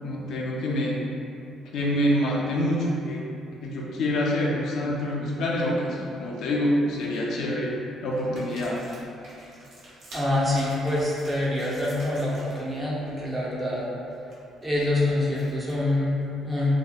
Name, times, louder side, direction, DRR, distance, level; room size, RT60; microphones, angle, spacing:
voice 1, 0.0-1.0 1.7-3.2 3.6-8.9, left 1 dB, 75° left, -3 dB, 0.4 m, -26 dB
sound 1, 5.9-6.4 6.9-7.5 8.1-12.8 13.0-13.3 13.6-15.9, right 1 dB, 70° right, 0.6 m, -48 dB
voice 2, 10.1-13.9 14.6-16.7, left 1 dB, 15° right, -6 dB, 0.5 m, -26 dB
2.6 x 2.1 x 2.3 m, 2.7 s
cardioid pair, 100°, 0 cm